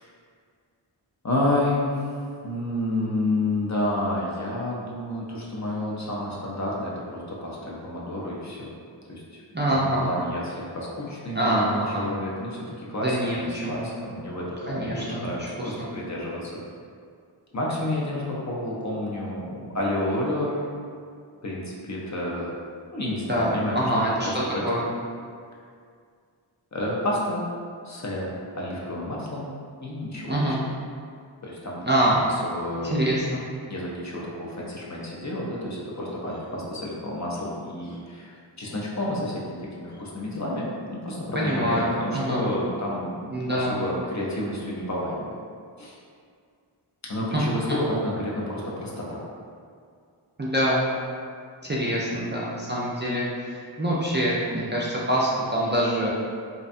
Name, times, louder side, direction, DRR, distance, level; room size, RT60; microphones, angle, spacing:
voice 1, 1.2-2.1 2.4-8.7 9.1-9.4 9.7-16.6 17.5-20.6 21.4-22.5 22.9-23.8 24.2-24.7 26.7-27.4 27.8-29.5 29.8-30.6 31.4-33.1 33.7-45.3 45.8-45.9 47.0-49.2, left 1 dB, 40° left, -4 dB, 0.5 m, -30 dB
voice 2, 9.5-10.0 11.3-12.0 13.0-13.9 14.7-15.9 23.3-24.8 30.3-30.6 31.8-32.2 32.8-33.4 41.5-42.5 43.3-43.8 47.3-47.4 50.4-50.8 51.6-56.1, right 1 dB, 25° right, -7 dB, 0.3 m, -25 dB
2.6 x 2.2 x 2.5 m, 2.2 s
wide cardioid pair, 45°, 46 cm